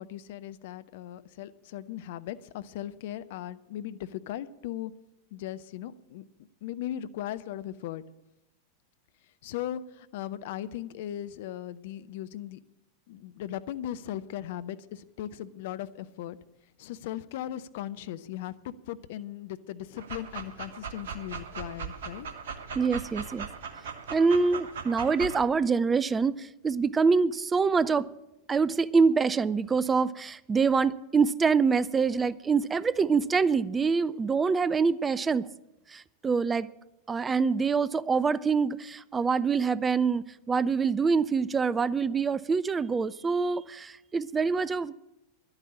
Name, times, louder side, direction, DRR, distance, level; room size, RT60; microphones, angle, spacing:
voice 1, 0.0-4.9 5.3-6.2 6.6-8.0 9.2-12.6 13.1-16.4 16.8-22.3, left 12 dB, 50° left, 14 dB, 0.6 m, -38 dB
Dog, 20.0-25.4, right 6 dB, 60° right, 1.2 m, -39 dB
voice 2, 22.8-23.5 24.1-28.1 28.5-35.5 35.9-36.7 37.1-45.0, right 5 dB, 15° right, 18 dB, 0.4 m, -25 dB
11.5 x 8.8 x 8.5 m, 0.92 s
figure-of-eight pair, 90°, 0 cm